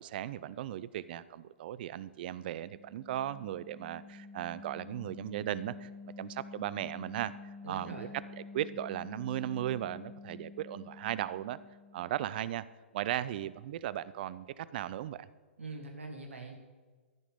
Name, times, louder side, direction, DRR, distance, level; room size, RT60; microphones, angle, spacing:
voice 1, 0.0-5.9 6.2-8.1 8.5-11.6 11.9-12.7 12.9-15.3, right 12 dB, 50° right, 18 dB, 0.4 m, -37 dB
sound 1, 2.2-12.4, left 3 dB, 5° right, 2.1 m, -49 dB
voice 2, 7.6-8.1 15.6-16.5, right 3 dB, 75° right, 3 dB, 1.6 m, -43 dB
14.5 x 5.0 x 5.2 m, 1.4 s
figure-of-eight pair, 120°, 7 cm